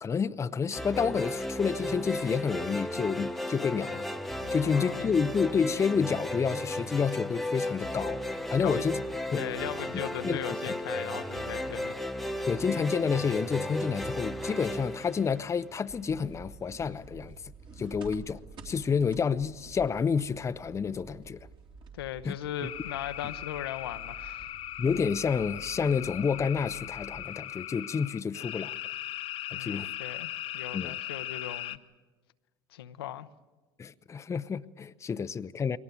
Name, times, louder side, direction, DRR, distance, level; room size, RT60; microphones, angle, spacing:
voice 1, 0.0-4.1 4.5-8.2 8.5-9.0 9.3-9.5 10.2-10.4 12.5-17.4 17.8-18.4 18.6-21.5 22.2-22.4 24.8-28.7 29.5-29.9 30.7-31.0 33.8-35.8, left 6 dB, 25° left, 0.6 m, -29 dB
sound 1, 0.7-16.0, left 1 dB, ahead, 1.0 m, -34 dB
voice 2, 4.4-5.1 8.6-8.8 9.3-11.9 21.9-24.5 29.5-31.8 32.7-33.3, left 11 dB, 80° left, 0.8 m, -38 dB
sound 2, 15.9-27.2, right 5 dB, 40° right, 3.1 m, -50 dB
sound 3, 22.6-31.8, left 13 dB, 50° left, 1.0 m, -39 dB
22.5 x 18.0 x 9.3 m
hypercardioid pair, 75°, 12 cm